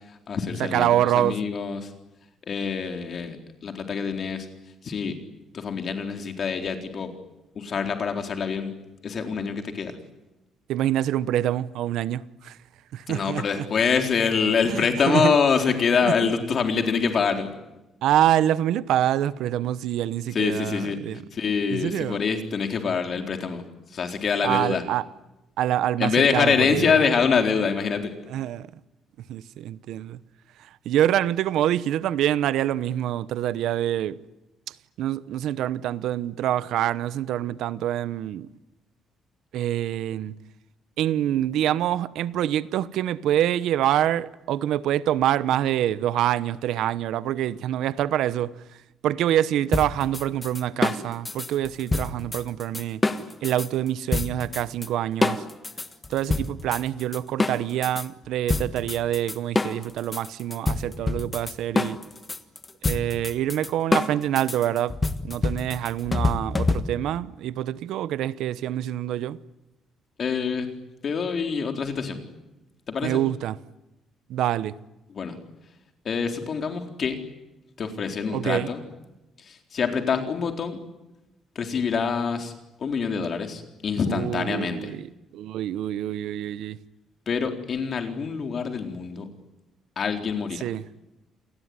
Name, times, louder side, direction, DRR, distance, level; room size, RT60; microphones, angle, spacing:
voice 1, 0.1-1.9 2.5-3.4 3.6-4.5 4.8-5.1 5.5-7.1 7.6-8.7 9.0-9.9 13.1-17.5 20.3-21.0 21.3-23.6 23.9-24.8 26.0-28.1 70.2-70.7 71.0-72.2 72.9-73.2 75.1-75.4 76.0-77.2 77.8-78.8 79.4-80.8 81.6-82.5 82.8-84.9 87.3-89.3 90.0-90.6, left 6 dB, 40° left, 4.0 m, -25 dB
voice 2, 0.6-1.4 10.7-12.6 12.9-13.7 14.6-15.3 16.0-16.3 18.0-21.2 21.7-22.2 24.4-25.1 25.6-27.0 28.3-28.7 29.3-30.2 30.6-34.2 34.7-38.5 39.5-40.3 41.0-48.5 49.0-53.0 53.4-55.4 56.1-62.0 62.8-69.4 73.0-73.6 74.3-74.8 78.3-78.7 84.1-85.1 85.3-86.8 90.6-90.8, right 12 dB, 75° right, 0.9 m, -26 dB
sound 1, 49.7-53.7 54.1-54.9 55.2-58.1 58.5-67.2, left 3 dB, 15° left, 1.4 m, -27 dB
29.0 x 20.5 x 9.7 m
cardioid pair, 155°, 0 cm